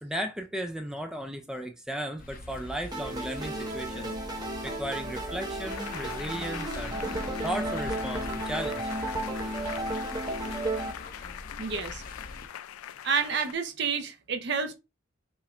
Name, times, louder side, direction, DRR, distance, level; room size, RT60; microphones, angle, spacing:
voice 1, 0.0-7.0 7.4-8.9, right 1 dB, 5° right, 0.3 m, -35 dB
sound 1, 2.2-12.5, left 2 dB, 40° left, 0.6 m, -43 dB
sound 2, 2.9-10.9, right 1 dB, 20° right, 0.8 m, -34 dB
sound 3, 5.7-13.5, left 10 dB, 90° left, 0.3 m, -42 dB
voice 2, 11.6-12.0 13.0-14.8, right 5 dB, 55° right, 0.8 m, -29 dB
5.5 x 2.4 x 3.2 m
head